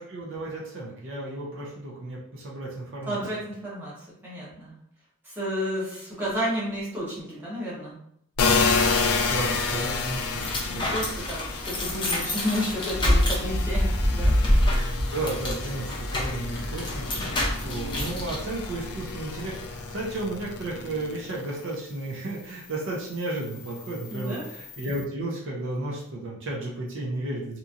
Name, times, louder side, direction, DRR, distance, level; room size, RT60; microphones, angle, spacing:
voice 1, 0.0-3.2 9.3-11.1 15.1-27.6, right 2 dB, 55° right, -3 dB, 0.6 m, -33 dB
voice 2, 3.1-3.9 4.2-4.7 5.2-8.0 10.7-14.4 24.1-24.4, equal, 10° right, -8 dB, 0.9 m, -31 dB
sound 1, 8.4-21.7 22.2-25.0, left 4 dB, 70° left, 0.4 m, -30 dB
sound 2, 10.0-18.4, left 1 dB, 20° left, 0.5 m, -26 dB
2.9 x 2.5 x 2.4 m, 0.71 s
head